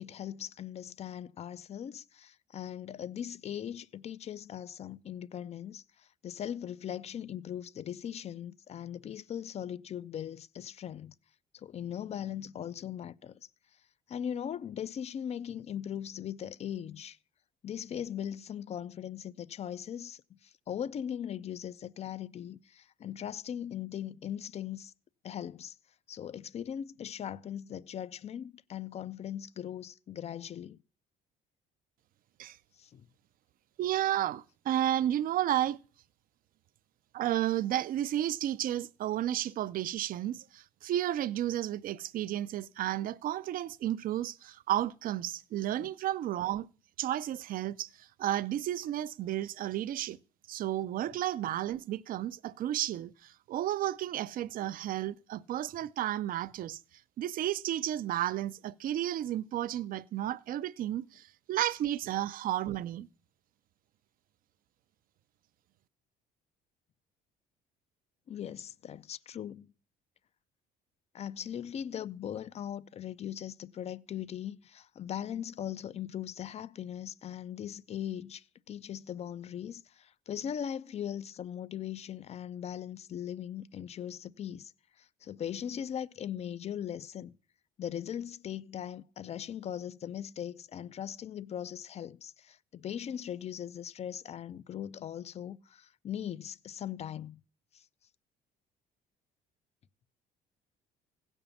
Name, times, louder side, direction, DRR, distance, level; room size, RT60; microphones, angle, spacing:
voice 1, 0.0-11.1 11.5-13.4 14.1-17.2 17.6-24.9 25.2-25.8 26.1-30.8 32.8-33.1 45.8-45.9 51.1-51.2 68.3-69.7 71.1-84.7 85.0-87.3 87.8-97.4 97.7-97.8, left 9 dB, 40° left, 0.4 m, -39 dB
voice 2, 33.8-35.8 37.1-46.7 47.0-50.2 50.5-56.8 57.2-63.1, right 12 dB, 60° right, 0.5 m, -32 dB
16.0 x 5.4 x 7.0 m
cardioid pair, 110°, 17 cm